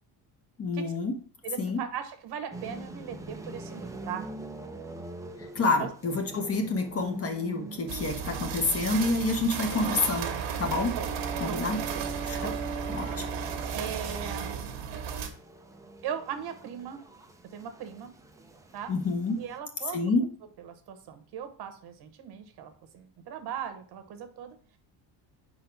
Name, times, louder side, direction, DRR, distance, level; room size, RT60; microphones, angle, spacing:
voice 1, 0.6-1.1 1.6-1.8 5.5-10.3 10.6-10.9 11.4-11.8 12.2-12.5 12.9-13.2 18.9-19.4 19.9-20.3, left 3 dB, 30° left, 5 dB, 1.0 m, -28 dB
voice 2, 1.4-4.3 5.8-5.9 10.9-11.1 11.4-12.1 12.4-12.6 13.7-14.5 16.0-17.0 17.5-18.1 18.7-18.9 19.4-20.1 20.6-24.6, right 8 dB, 60° right, 8 dB, 1.1 m, -38 dB
sound 1, 2.5-19.6, right 2 dB, 10° right, 0.4 m, -46 dB
sound 2, 7.9-15.3, right 6 dB, 85° right, 1.4 m, -34 dB
5.0 x 4.1 x 5.7 m, 0.43 s
cardioid pair, 155°, 44 cm